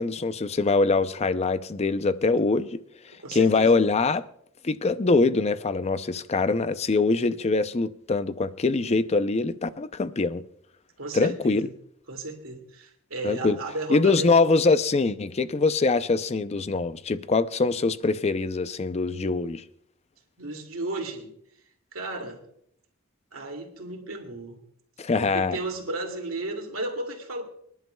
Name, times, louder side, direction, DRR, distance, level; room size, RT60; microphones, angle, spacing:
voice 1, 0.0-2.8 3.3-4.3 4.6-10.4 11.1-11.7 13.2-13.6 13.9-19.6 25.0-25.6, left 3 dB, 30° left, 0.5 m, -23 dB
voice 2, 3.2-3.7 11.0-11.7 12.1-14.3 20.4-21.3 21.9-22.4 23.3-24.6 25.2-27.4, right 2 dB, 75° right, 2.4 m, -34 dB
25.5 x 11.0 x 2.3 m
head